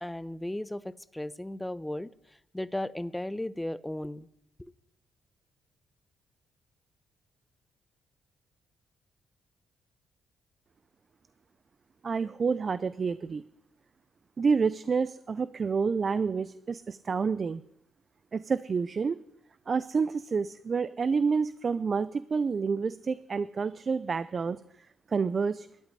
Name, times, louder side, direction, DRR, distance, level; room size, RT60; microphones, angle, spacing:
voice 1, 0.0-2.1 2.5-4.3 4.6-4.7, left 1 dB, 10° left, 17 dB, 0.7 m, -35 dB
voice 2, 12.0-13.4 14.4-17.6 18.3-19.2 19.7-24.6 25.1-25.7, right 5 dB, 45° right, 16 dB, 0.5 m, -28 dB
12.5 x 8.2 x 9.9 m, 0.77 s
cardioid pair, 75°, 0 cm